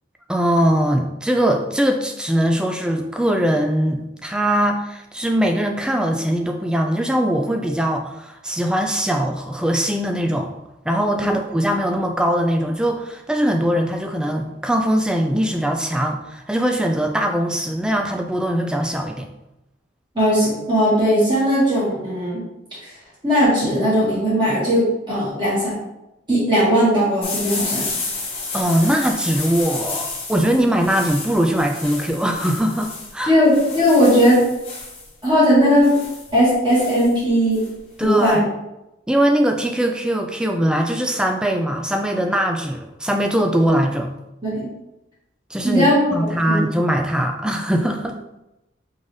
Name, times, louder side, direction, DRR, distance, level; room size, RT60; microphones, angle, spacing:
voice 1, 0.3-10.5 10.9-19.3 28.5-33.4 38.0-38.4 39.1-44.1 45.5-45.9 46.1-48.2, equal, 5° right, 3 dB, 0.3 m, -21 dB
voice 2, 20.1-22.4 22.8-22.9 23.2-25.7 26.3-27.9 33.3-34.4 35.2-35.9 36.3-37.6 38.0-38.4 44.4-44.7 45.6-46.0 46.5-46.6, equal, 25° right, -8 dB, 1.6 m, -17 dB
sound 1, 27.2-38.3, left 3 dB, 30° left, 0.9 m, -31 dB
4.0 x 3.7 x 3.2 m, 0.93 s
head